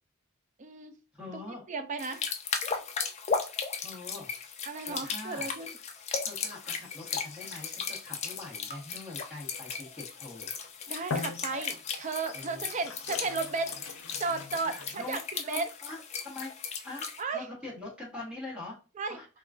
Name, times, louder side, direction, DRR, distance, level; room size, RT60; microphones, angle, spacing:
voice 1, 0.6-1.0 1.3-2.2 4.7-5.7 10.9-13.8 14.2-15.7 17.2-17.5 19.0-19.2, right 4 dB, 35° right, 0.4 m, -34 dB
voice 2, 1.1-1.7 3.8-4.3 4.9-5.5 6.2-10.5 12.3-12.6 14.6-16.5 16.8-17.1 17.3-18.8 19.1-19.3, left 2 dB, 5° right, 1.2 m, -43 dB
sound 1, 2.0-17.2, left 5 dB, 30° left, 0.4 m, -36 dB
sound 2, 10.4-10.6 11.0-12.0 12.6-15.4, left 4 dB, 85° left, 0.6 m, -40 dB
3.7 x 2.3 x 2.3 m
head